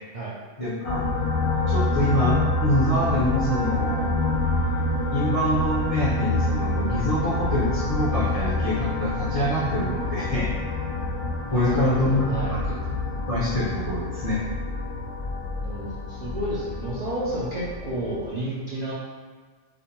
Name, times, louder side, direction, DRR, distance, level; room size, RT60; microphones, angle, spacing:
voice 1, 0.6-1.1 1.7-4.2 5.1-10.5 11.5-12.8 13.1-14.4, equal, 40° left, -10 dB, 0.6 m, -25 dB
sound 1, 0.8-18.3, left 2 dB, 75° left, 0.8 m, -27 dB
voice 2, 11.5-12.5 15.6-18.9, right 1 dB, 55° right, -9 dB, 0.4 m, -31 dB
2.5 x 2.1 x 2.9 m, 1.5 s
omnidirectional pair, 1.2 m